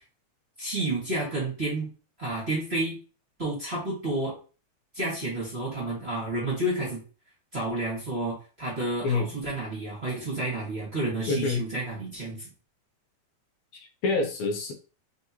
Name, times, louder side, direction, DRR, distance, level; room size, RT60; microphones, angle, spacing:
voice 1, 0.6-1.9 2.2-3.0 3.4-4.3 4.9-7.0 7.5-12.5, right 2 dB, 25° right, -7 dB, 1.5 m, -30 dB
voice 2, 11.3-11.6 13.7-14.7, left 3 dB, 80° left, 3 dB, 1.8 m, -27 dB
4.1 x 3.6 x 2.9 m, 0.36 s
omnidirectional pair, 3.3 m